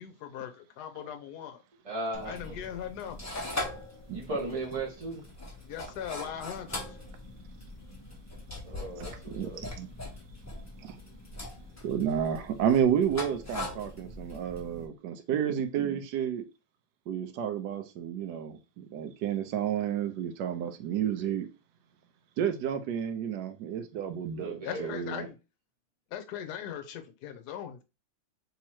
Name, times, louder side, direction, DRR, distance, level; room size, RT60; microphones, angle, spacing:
voice 1, 0.0-1.6 2.2-3.2 5.6-6.8 24.6-25.4 26.1-27.8, left 9 dB, 65° left, 1.2 m, -39 dB
voice 2, 1.8-2.6 4.1-5.2 8.6-9.6 24.3-25.0, right 2 dB, 20° right, 1.1 m, -36 dB
sound 1, 2.1-14.9, left 2 dB, 15° left, 0.5 m, -41 dB
voice 3, 9.0-9.9 10.8-11.0 11.8-16.4 17.1-21.5 22.4-25.3, right 9 dB, 70° right, 1.2 m, -31 dB
3.6 x 3.0 x 4.3 m
omnidirectional pair, 2.1 m